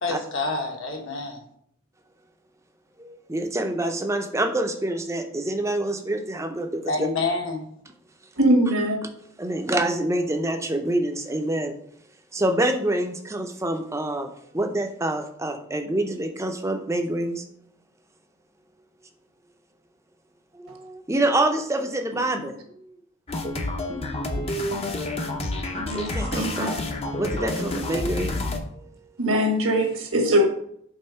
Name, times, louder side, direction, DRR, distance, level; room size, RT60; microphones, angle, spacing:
voice 1, 0.0-1.4 6.9-7.7, left 3 dB, 65° left, 1 dB, 1.3 m, -27 dB
voice 2, 3.0-6.9 9.0-9.1 9.4-11.7 12.3-17.4 20.6-22.5 25.9-26.7 27.2-28.4 28.7-28.9, right 1 dB, 15° right, 5 dB, 0.5 m, -26 dB
voice 3, 8.4-9.0 25.8-26.8 29.2-30.5, equal, 80° right, 4 dB, 1.3 m, -22 dB
sound 1, 23.3-28.6, left 2 dB, 30° left, 0.6 m, -29 dB
5.5 x 3.7 x 5.5 m, 0.68 s
head